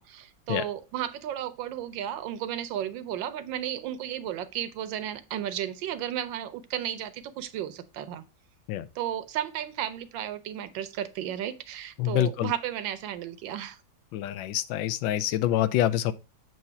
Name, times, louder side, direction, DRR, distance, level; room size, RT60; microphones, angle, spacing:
voice 1, 0.0-8.2 8.9-13.8, right 11 dB, 85° right, 1.4 m, -34 dB
voice 2, 12.0-12.5 14.1-16.1, left 12 dB, 85° left, 1.3 m, -26 dB
7.8 x 2.8 x 5.6 m
omnidirectional pair, 2.0 m